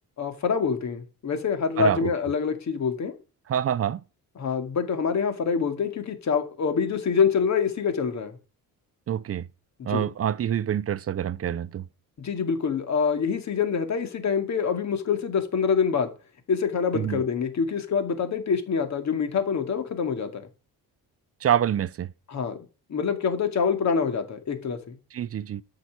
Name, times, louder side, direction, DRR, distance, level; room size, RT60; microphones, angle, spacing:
voice 1, 0.2-3.2 4.4-8.4 9.9-10.0 12.2-16.1 16.5-20.5 22.3-22.6 22.9-25.0, left 6 dB, 50° left, 2.3 m, -26 dB
voice 2, 1.8-2.1 3.5-4.0 9.1-9.5 9.8-11.9 16.9-17.2 21.4-22.1 25.1-25.6, right 10 dB, 40° right, 0.5 m, -26 dB
13.0 x 5.8 x 8.0 m
wide cardioid pair, 160°, 36 cm